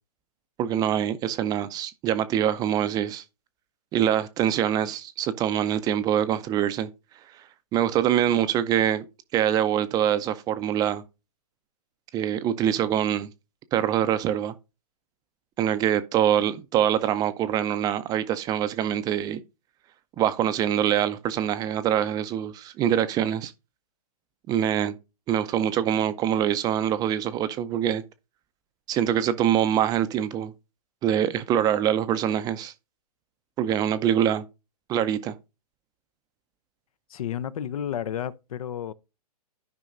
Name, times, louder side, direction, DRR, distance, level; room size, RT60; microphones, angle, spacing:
voice 1, 0.6-3.2 3.9-6.9 7.7-9.0 9.3-11.0 12.1-13.3 13.7-14.5 15.6-19.4 20.2-23.5 24.5-25.0 25.3-28.0 28.9-30.5 31.0-32.7 33.6-34.4 34.9-35.3, right 10 dB, 20° right, 0.5 m, -24 dB
voice 2, 37.1-38.9, left 9 dB, 60° left, 0.6 m, -31 dB
12.5 x 5.2 x 2.6 m
hypercardioid pair, 125°, 20 cm